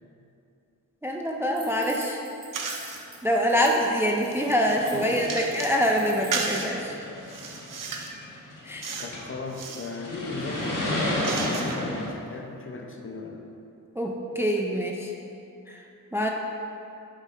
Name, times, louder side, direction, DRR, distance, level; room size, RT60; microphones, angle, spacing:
voice 1, 1.0-2.2 3.2-7.0 8.6-9.0 14.0-15.1 15.7-15.8 16.1-16.3, equal, 10° right, 0 dB, 0.3 m, -25 dB
sound 1, 1.5-3.2 3.5-3.9 4.1-6.5, right 1 dB, 25° right, 1.2 m, -45 dB
sound 2, 2.5-3.0 3.6-5.8 6.3-6.7 7.2-8.2 8.8-9.2 9.5-9.9 10.5-12.0, right 4 dB, 75° right, 0.7 m, -34 dB
sound 3, 3.6-3.7 4.3-9.4 9.9-12.1, left 1 dB, 70° left, 1.3 m, -33 dB
voice 2, 4.9-5.5 9.0-13.4, left 3 dB, 40° left, 2 dB, 0.6 m, -37 dB
9.7 x 6.3 x 2.5 m, 2.7 s
wide cardioid pair, 165°, 32 cm